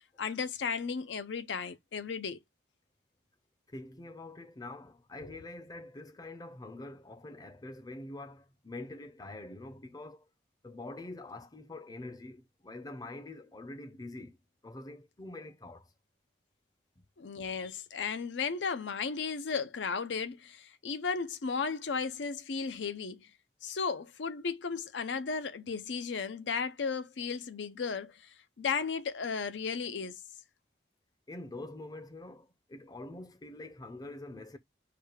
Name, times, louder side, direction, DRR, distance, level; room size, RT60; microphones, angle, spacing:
voice 1, 0.0-2.4 5.2-5.4 17.2-23.3 23.6-30.2, left 5 dB, 75° left, 0.6 m, -35 dB
voice 2, 3.7-10.3 10.6-14.4 14.6-15.9 31.3-34.6, left 2 dB, 20° left, 0.6 m, -45 dB
4.8 x 2.3 x 4.8 m
head